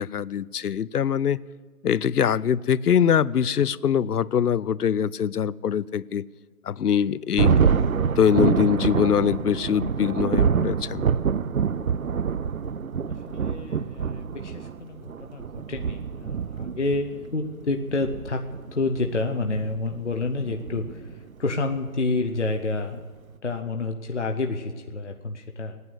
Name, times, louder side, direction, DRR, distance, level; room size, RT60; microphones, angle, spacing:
voice 1, 0.0-1.4 1.8-6.2 6.6-7.7 8.2-11.0, left 8 dB, 90° left, 21 dB, 0.6 m, -23 dB
Thunder, 7.4-21.3, right 6 dB, 65° right, 0.5 m, -26 dB
voice 2, 13.1-23.1 23.4-25.8, left 3 dB, 50° left, 4 dB, 0.8 m, -29 dB
17.5 x 9.5 x 7.9 m, 1.5 s
figure-of-eight pair, 175°, 45 cm